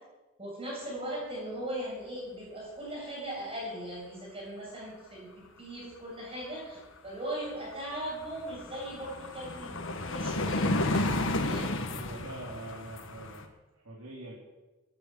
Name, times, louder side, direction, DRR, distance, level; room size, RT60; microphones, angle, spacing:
voice 1, 0.4-11.1 11.4-11.7, right 1 dB, 30° right, -4 dB, 7.7 m, -39 dB
sound 1, 7.3-7.4 7.7-13.5, left 2 dB, 65° left, 1.7 m, -32 dB
voice 2, 11.9-13.5 13.8-14.3, right 1 dB, 85° right, -6 dB, 3.9 m, -43 dB
17.5 x 10.0 x 7.9 m, 1.1 s
head